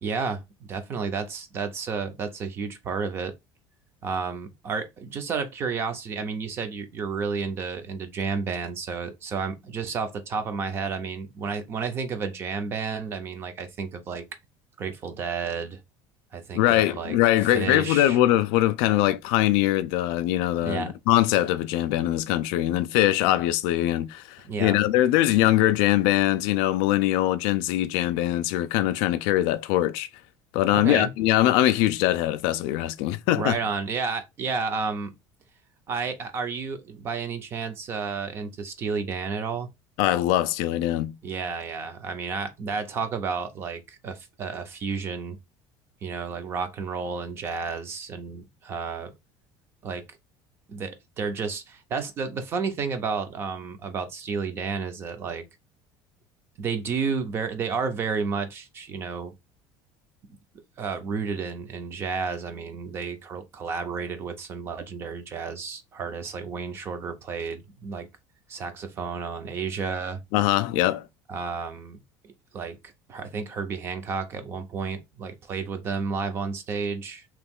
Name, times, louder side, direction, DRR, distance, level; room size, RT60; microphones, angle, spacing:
voice 1, 0.0-3.3 4.0-14.3 14.8-15.8 16.3-17.1 17.5-18.2 20.6-20.9 24.4-24.8 30.7-31.1 33.4-35.2 35.9-39.7 41.2-45.4 46.0-49.1 49.8-50.1 50.7-55.4 56.6-59.3 60.3-60.4 60.8-68.1 68.5-70.2 71.3-72.0 72.2-72.8 73.1-77.3, right 5 dB, 30° right, 0.5 m, -31 dB
voice 2, 16.5-30.1 30.5-33.6 40.0-41.2 70.3-71.1, left 14 dB, 70° left, 0.4 m, -22 dB
2.9 x 2.3 x 3.5 m
cardioid pair, 175°, 9 cm